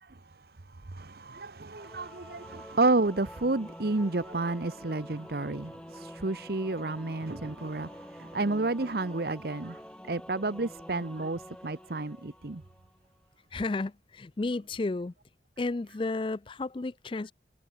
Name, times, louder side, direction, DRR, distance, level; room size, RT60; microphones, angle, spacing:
voice 1, 0.0-12.6, right 2 dB, 55° right, 0.9 m, -31 dB
Singing / Musical instrument, 1.7-13.0, equal, 5° left, 1.8 m, -47 dB
voice 2, 13.5-15.1 15.6-17.3, left 3 dB, 30° left, 0.4 m, -32 dB
head